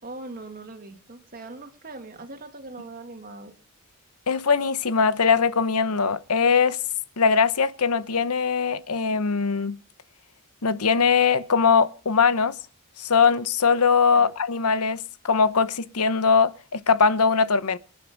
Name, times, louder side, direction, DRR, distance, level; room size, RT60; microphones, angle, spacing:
voice 1, 0.0-3.5 14.1-14.3, right 2 dB, 40° right, 2.3 m, -41 dB
voice 2, 4.3-6.8 7.2-9.8 10.6-12.6 13.0-17.8, left 5 dB, 85° left, 1.0 m, -21 dB
26.5 x 9.1 x 5.2 m
head